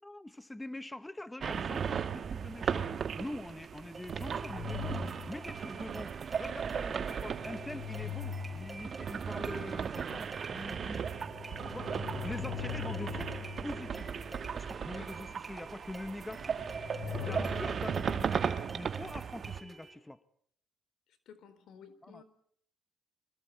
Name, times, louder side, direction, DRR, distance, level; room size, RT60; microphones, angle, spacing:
voice 1, 0.0-2.9 3.1-11.1 11.7-13.3 13.6-14.1 14.5-16.6 17.2-20.2 22.0-22.2, left 1 dB, 10° left, 13 dB, 1.1 m, -44 dB
sound 1, 1.4-19.6, right 7 dB, 50° right, 1.4 m, -37 dB
sound 2, 2.6-2.9 4.1-5.6 7.0-9.3 10.0-15.1 16.3-18.1, left 7 dB, 55° left, 4.7 m, -42 dB
sound 3, 3.9-19.9, right 3 dB, 20° right, 7.4 m, -50 dB
voice 2, 21.3-22.2, left 7 dB, 75° left, 13 dB, 4.2 m, -53 dB
25.5 x 23.5 x 8.5 m, 0.66 s
cardioid pair, 90°, 0 cm